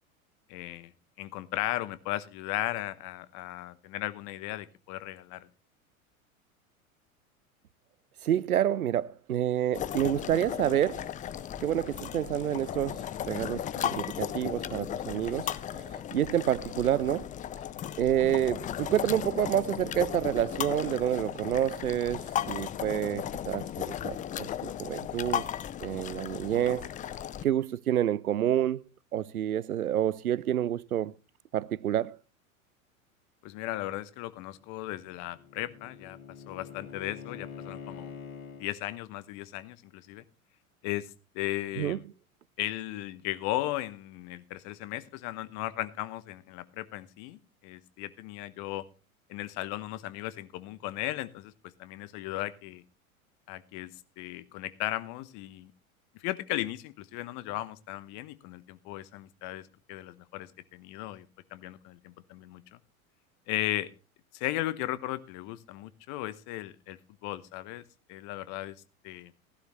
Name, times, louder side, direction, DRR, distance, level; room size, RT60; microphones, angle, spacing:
voice 1, 0.5-0.9 1.2-5.5 33.4-36.2 36.5-38.1 38.6-40.2 40.8-42.1 42.6-48.8 49.3-51.5 51.8-52.8 53.5-55.7 56.1-61.3 61.5-62.8 63.5-63.9 64.3-67.8 68.1-68.8 69.0-69.3, left 15 dB, 45° left, 1.0 m, -36 dB
voice 2, 8.2-11.0 11.6-17.3 18.0-25.4 25.8-26.9 27.4-28.8 29.1-31.1 31.5-32.2 41.8-42.0, right 11 dB, 85° right, 0.5 m, -28 dB
sound 1, 9.7-27.4, left 10 dB, 20° left, 0.5 m, -36 dB
Bowed string instrument, 34.6-38.7, left 7 dB, 75° left, 1.8 m, -45 dB
16.0 x 11.5 x 3.1 m
figure-of-eight pair, 85°, 42 cm